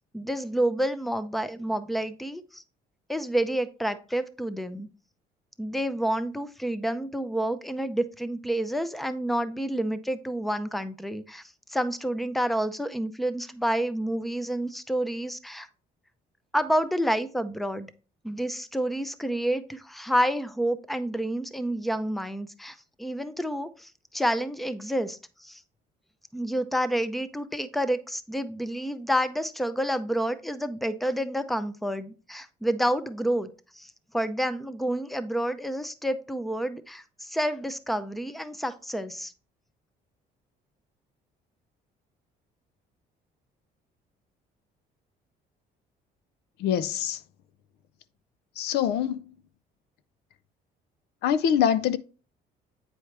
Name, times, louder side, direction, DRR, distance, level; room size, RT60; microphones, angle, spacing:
voice 1, 0.1-2.6 3.1-4.9 5.6-11.4 11.7-15.7 16.5-17.9 18.2-25.6 26.3-33.5 33.7-39.3, right 1 dB, ahead, 0.6 m, -29 dB
voice 2, 46.6-47.2 48.6-49.3 51.2-52.0, left 9 dB, 75° left, 0.5 m, -24 dB
8.6 x 4.6 x 3.3 m
cardioid pair, 110°, 17 cm